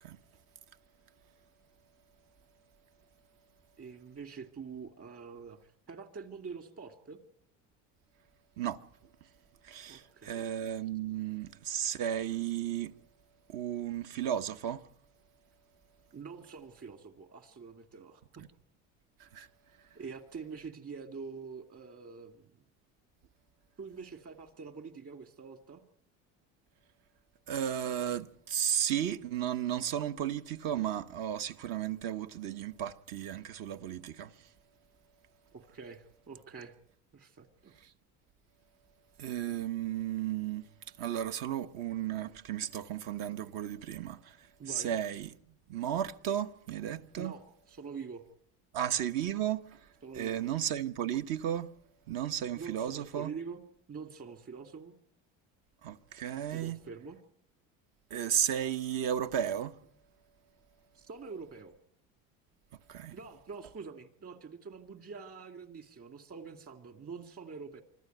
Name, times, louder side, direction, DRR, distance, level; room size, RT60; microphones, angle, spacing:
voice 1, 3.8-7.2 9.9-10.4 16.1-18.4 19.9-22.6 23.8-25.8 35.5-36.7 37.1-37.7 44.6-44.9 47.2-48.2 50.0-50.4 52.5-53.6 53.9-55.0 56.5-57.2 60.9-61.7 63.1-67.8, right 5 dB, 40° right, 2.6 m, -45 dB
voice 2, 9.6-12.9 13.5-14.8 19.2-19.5 27.5-34.3 39.2-40.7 41.0-44.4 44.7-45.3 45.7-47.4 48.7-49.8 50.1-51.7 52.1-53.3 55.8-56.8 58.1-59.8 62.9-63.2, right 10 dB, 65° right, 1.2 m, -34 dB
25.0 x 13.5 x 9.3 m
cardioid pair, 110°, 35 cm